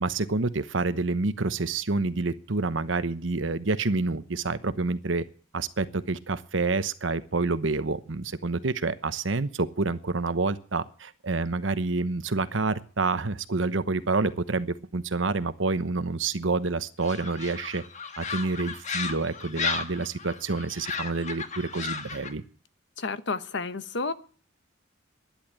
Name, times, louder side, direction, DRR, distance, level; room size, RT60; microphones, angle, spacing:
voice 1, 0.0-5.2 5.5-17.8 18.2-22.4, right 3 dB, 80° right, 1.0 m, -28 dB
sound 1, 17.0-22.3, left 5 dB, 40° left, 1.4 m, -34 dB
voice 2, 23.0-24.1, left 4 dB, 65° left, 1.0 m, -31 dB
12.0 x 10.5 x 8.8 m
head